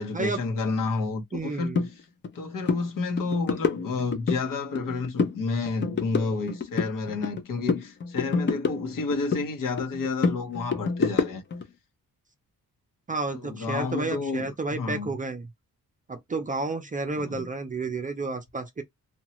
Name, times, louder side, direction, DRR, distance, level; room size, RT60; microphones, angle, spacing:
voice 1, 0.0-1.7 2.3-11.4 13.3-15.1 17.2-17.5, left 4 dB, 65° left, 0.9 m, -30 dB
voice 2, 1.3-1.8 13.1-15.5 16.1-18.8, right 3 dB, 25° right, 0.5 m, -31 dB
sound 1, 1.7-1.9 2.2-2.4 2.6-2.8 3.2-4.4 4.7-5.4 5.7-7.4 7.7-9.5 9.8-11.6, left 5 dB, 35° left, 0.5 m, -27 dB
2.8 x 2.3 x 2.9 m
wide cardioid pair, 130°, 35 cm